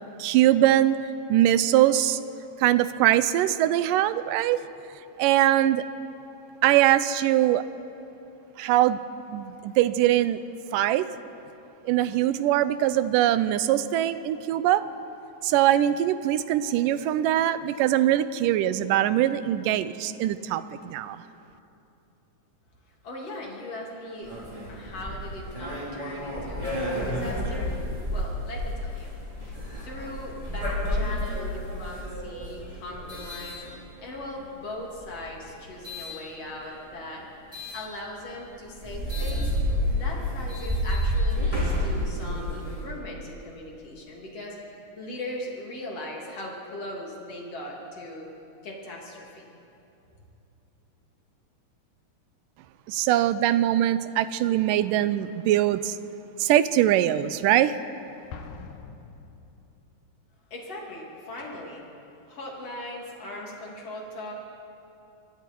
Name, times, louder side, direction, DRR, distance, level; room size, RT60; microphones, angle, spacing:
voice 1, 0.2-1.0 1.3-2.2 2.6-4.6 5.2-5.8 6.6-7.6 8.6-9.0 9.3-10.4 10.7-11.1 11.9-14.8 15.4-21.2 52.9-55.9 56.4-57.7, right 13 dB, 90° right, 14 dB, 2.3 m, -22 dB
voice 2, 23.0-24.4 24.7-29.1 29.5-37.2 37.7-39.5 39.9-44.6 45.0-48.3 48.6-49.5 60.5-61.8 62.3-64.3, left 1 dB, 50° left, -2 dB, 4.0 m, -39 dB
sound 1, 24.2-34.3 34.9-36.1 37.5-37.8 38.3-38.4 38.7-42.9, left 1 dB, 10° right, 4.6 m, -30 dB
Explosion, 58.3-60.1, left 5 dB, 90° left, 2.8 m, -43 dB
26.0 x 23.0 x 4.6 m, 2.8 s
omnidirectional pair, 3.8 m